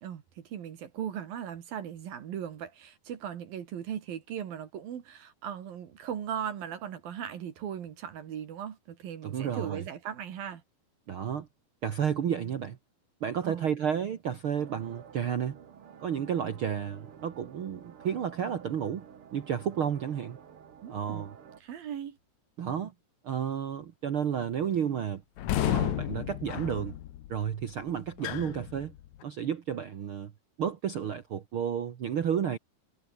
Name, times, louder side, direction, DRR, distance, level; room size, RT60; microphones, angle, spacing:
voice 1, 0.0-10.6 13.4-13.7 20.8-21.3 21.6-22.2, right 9 dB, 65° right, 3.7 m, -38 dB
voice 2, 9.2-9.8 11.1-11.5 11.8-12.8 13.2-15.6 16.0-19.1 19.3-20.4 20.9-21.3 22.6-22.9 23.2-25.2 25.6-27.0 27.3-28.9 29.2-30.3 30.6-32.6, right 8 dB, 85° right, 1.1 m, -31 dB
sound 1, 14.5-21.6, right 8 dB, 45° right, 2.0 m, -51 dB
sound 2, 25.4-29.2, left 13 dB, 65° left, 2.0 m, -33 dB
omnidirectional pair, 4.6 m